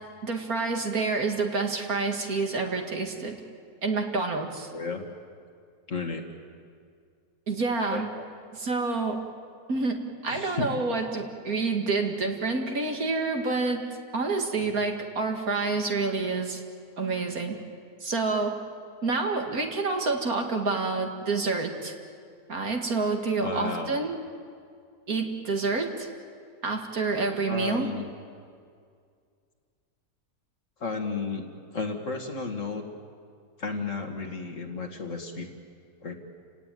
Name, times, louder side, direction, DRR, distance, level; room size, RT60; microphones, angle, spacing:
voice 1, 0.2-3.4 3.8-4.7 7.5-8.1 8.5-9.3 9.7-13.8 14.1-16.6 17.0-17.6 18.0-18.6 19.0-21.9 22.5-24.2 25.1-26.1 26.6-27.9, right 3 dB, 55° right, 3 dB, 2.4 m, -28 dB
voice 2, 4.7-5.0 5.9-6.3 7.9-8.2 10.3-10.7 14.6-14.7 23.4-24.0 27.5-28.1 30.8-32.8 33.6-35.5 36.0-36.1, left 4 dB, 45° left, 3 dB, 2.2 m, -33 dB
29.5 x 17.5 x 9.3 m, 2.2 s
omnidirectional pair, 1.8 m